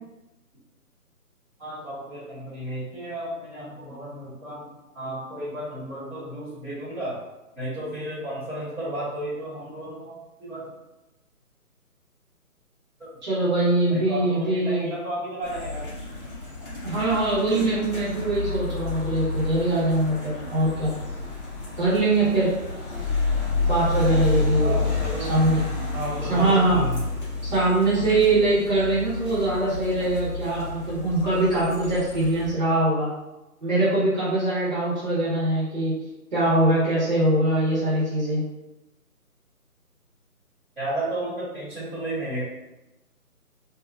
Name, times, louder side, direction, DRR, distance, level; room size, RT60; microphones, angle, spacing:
voice 1, 1.6-4.6 4.9-7.2 7.5-10.7 13.0-13.1 13.9-15.9 17.3-17.9 24.6-25.3 25.9-27.0 40.7-42.4, right 1 dB, ahead, -23 dB, 1.2 m, -33 dB
voice 2, 13.2-14.9 16.8-20.9 21.8-22.5 23.7-24.9 25.3-25.6 26.3-26.8 27.4-33.1 33.6-35.9 36.3-38.4, right 2 dB, 30° right, -10 dB, 1.3 m, -22 dB
sound 1, 15.4-32.5, left 3 dB, 35° left, 1.2 m, -30 dB
3.6 x 2.6 x 2.5 m, 0.98 s
figure-of-eight pair, 150°, 45 cm